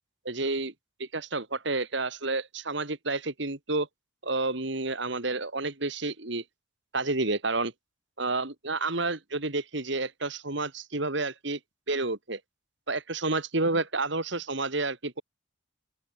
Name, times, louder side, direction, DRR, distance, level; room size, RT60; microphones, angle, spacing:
voice 1, 0.3-0.7 1.0-3.9 4.2-6.4 6.9-7.7 8.2-11.6 11.9-12.4 12.9-15.2, right 3 dB, 60° right, 2.2 m, -30 dB
open air
head